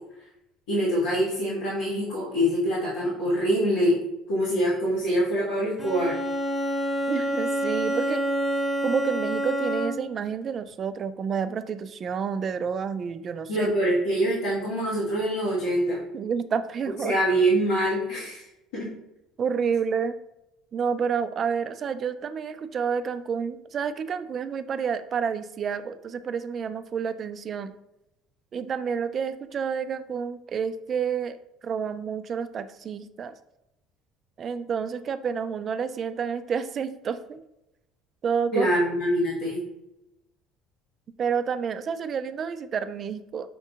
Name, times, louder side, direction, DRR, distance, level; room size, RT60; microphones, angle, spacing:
voice 1, 0.7-4.0 4.3-6.2 13.5-16.0 17.0-18.4 18.7-18.9 38.5-39.6, equal, 85° left, -9 dB, 1.5 m, -24 dB
Bowed string instrument, 5.8-10.2, right 1 dB, 15° left, 0.7 m, -27 dB
voice 2, 7.1-8.2 8.8-13.7 16.1-17.2 19.4-20.2 20.7-27.7 28.5-31.4 31.6-33.3 34.4-37.4 38.2-38.7 41.2-43.6, right 6 dB, 45° right, 12 dB, 0.3 m, -29 dB
5.9 x 2.7 x 2.4 m, 0.89 s
supercardioid pair, 90°, 0 cm